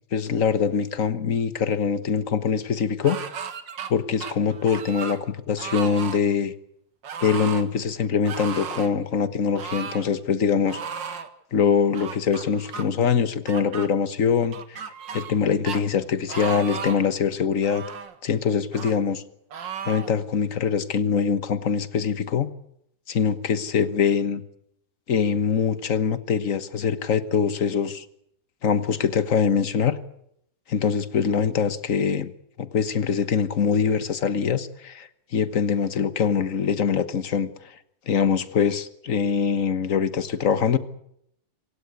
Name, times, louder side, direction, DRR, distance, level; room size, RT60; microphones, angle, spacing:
voice 1, 0.1-3.2 3.9-6.5 7.2-10.8 11.5-14.8 15.1-17.8 18.2-19.2 19.9-22.5 23.1-24.4 25.1-28.0 28.6-30.0 30.7-32.3 32.6-37.7 38.1-40.8, left 6 dB, 45° left, 14 dB, 1.6 m, -23 dB
sound 1, 3.0-3.9 4.2-5.2 5.6-6.2 7.0-7.6 8.2-8.9 9.5-10.1 10.7-11.3 11.9-12.8 13.5-13.9 14.5-15.4 15.7-15.8 16.3-17.1 17.6-18.1 18.7-18.9 19.5-20.1, right 7 dB, 75° right, 2.3 m, -35 dB
27.0 x 16.5 x 8.2 m, 0.75 s
omnidirectional pair, 2.0 m